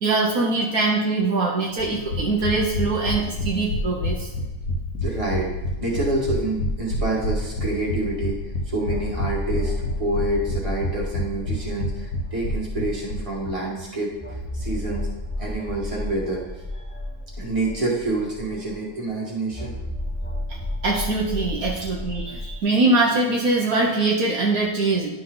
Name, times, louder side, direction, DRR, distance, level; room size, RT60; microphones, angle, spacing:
voice 1, 0.0-4.3 20.8-25.1, right 3 dB, 70° right, -2 dB, 1.4 m, -22 dB
sound 1, 1.8-13.5 13.8-13.9 14.1-14.2, left 1 dB, 70° left, 1.5 m, -28 dB
voice 2, 5.0-5.5 5.8-8.4 8.7-9.7 10.0-15.1 15.4-16.4 16.7-16.8 17.4-19.8 21.8-21.9, right 2 dB, 20° right, -5 dB, 2.1 m, -27 dB
sound 2, 8.0-8.1 8.8-13.4 14.2-18.9 19.5-22.6, left 1 dB, 10° left, 0.7 m, -32 dB
11.0 x 4.4 x 3.9 m, 1.1 s
omnidirectional pair, 1.6 m